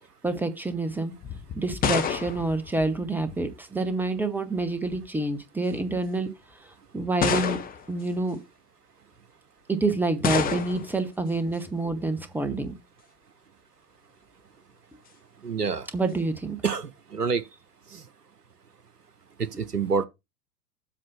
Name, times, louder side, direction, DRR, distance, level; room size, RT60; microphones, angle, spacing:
voice 1, 0.2-1.1 1.6-6.3 6.9-7.6 7.9-8.4 9.7-12.7 15.9-16.6, right 2 dB, 5° right, 1.1 m, -27 dB
sound 1, 1.2-3.6 4.6-5.1 5.9-6.0 7.2-8.0 10.2-11.0, left 7 dB, 20° left, 1.0 m, -28 dB
voice 2, 15.4-15.9 16.6-17.5 17.9-18.1 19.4-20.1, right 5 dB, 90° right, 0.7 m, -27 dB
7.7 x 4.8 x 6.7 m
figure-of-eight pair, 95°, 46 cm